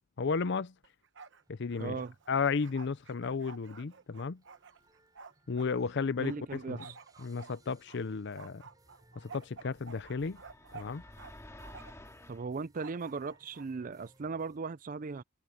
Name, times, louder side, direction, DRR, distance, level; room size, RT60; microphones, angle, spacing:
voice 1, 0.2-0.7 1.5-2.0 2.3-4.4 5.5-6.9 7.2-8.6 9.2-10.4 10.7-11.0, left 5 dB, 60° left, 0.6 m, -33 dB
Bark, 0.8-1.4 1.7-5.7 6.2-8.0 8.3-11.3 11.6-12.1 12.7-13.7, right 5 dB, 65° right, 1.1 m, -51 dB
sound 1, 1.4-14.6, right 1 dB, 20° right, 5.7 m, -65 dB
voice 2, 1.8-2.1 6.2-7.0 12.3-15.2, right 4 dB, 40° right, 0.4 m, -38 dB
sound 2, 9.6-12.5, left 1 dB, 15° left, 2.4 m, -52 dB
head